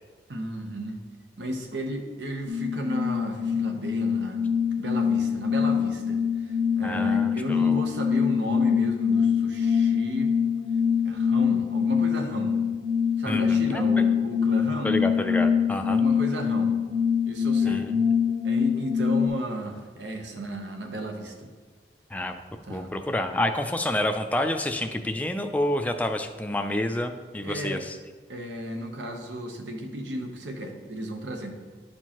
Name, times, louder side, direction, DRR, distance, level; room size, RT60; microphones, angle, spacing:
voice 1, 0.3-1.0 1.4-4.4 4.8-10.3 11.0-12.6 13.2-15.0 15.9-16.8 17.3-17.9 18.4-21.5 22.7-22.9 27.4-27.8 28.3-31.5, right 1 dB, 90° right, 4 dB, 0.9 m, -34 dB
sound 1, 2.5-19.3, left 6 dB, 45° right, 1.4 m, -24 dB
voice 2, 6.8-7.8 13.3-14.1 14.8-16.0 17.6-18.0 22.1-22.4 22.7-28.0, left 1 dB, 10° left, 6 dB, 0.3 m, -29 dB
11.0 x 4.5 x 2.9 m, 1.4 s
head